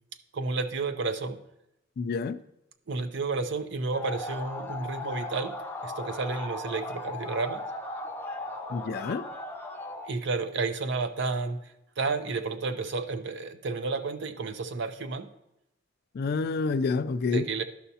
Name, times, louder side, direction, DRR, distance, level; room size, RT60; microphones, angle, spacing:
voice 1, 0.3-1.4 2.9-5.5 5.8-7.6 10.1-11.6 12.0-15.3 17.3-17.6, right 3 dB, 60° right, 9 dB, 0.6 m, -31 dB
voice 2, 2.0-2.4 8.7-9.2 16.1-17.4, left 4 dB, 50° left, 13 dB, 0.4 m, -28 dB
sound 1, 3.9-10.1, left 2 dB, 10° left, 0.6 m, -37 dB
12.5 x 5.6 x 2.8 m, 0.85 s
head